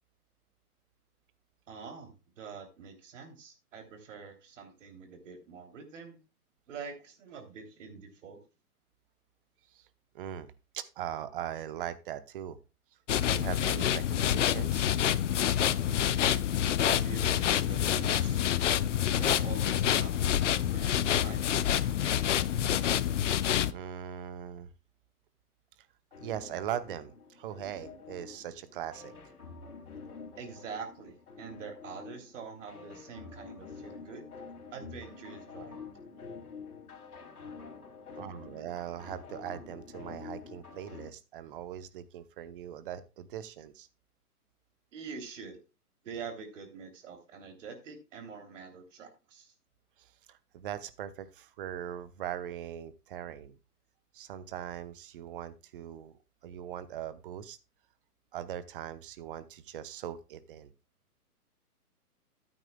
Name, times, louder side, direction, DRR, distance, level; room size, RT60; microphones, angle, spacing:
voice 1, 1.7-6.2 6.7-8.4 16.8-18.4 19.1-21.4 30.4-34.3 34.7-35.8 44.9-45.6 46.0-49.5, right 5 dB, 50° right, 5 dB, 3.2 m, -45 dB
voice 2, 10.1-12.6 13.3-14.9 23.7-24.7 26.2-29.1 38.2-43.9 50.0-53.6 54.1-56.2 56.4-57.6 58.3-60.7, right 10 dB, 35° right, 14 dB, 1.0 m, -40 dB
sound 1, 13.1-23.7, left 10 dB, 50° left, 0.6 m, -27 dB
sound 2, 26.1-41.1, left 5 dB, 65° left, 3.1 m, -48 dB
13.5 x 9.1 x 2.3 m, 0.28 s
figure-of-eight pair, 130°, 46 cm